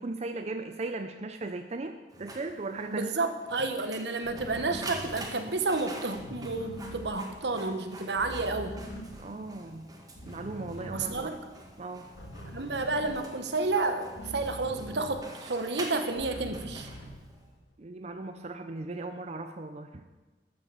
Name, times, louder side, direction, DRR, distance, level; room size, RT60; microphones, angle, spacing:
voice 1, 0.0-3.1 9.2-9.9 10.3-11.3 11.8-12.1 17.8-20.1, right 2 dB, 40° right, 7 dB, 0.6 m, -37 dB
Printer, 2.1-17.5, right 2 dB, 20° right, 1.7 m, -46 dB
voice 2, 2.9-8.8 10.9-11.4 12.5-16.9, right 3 dB, 75° right, 8 dB, 1.2 m, -31 dB
sound 1, 4.2-9.8 10.1-15.6 15.9-17.7, equal, 70° left, 1.8 m, -44 dB
13.0 x 6.8 x 7.0 m, 1.2 s
head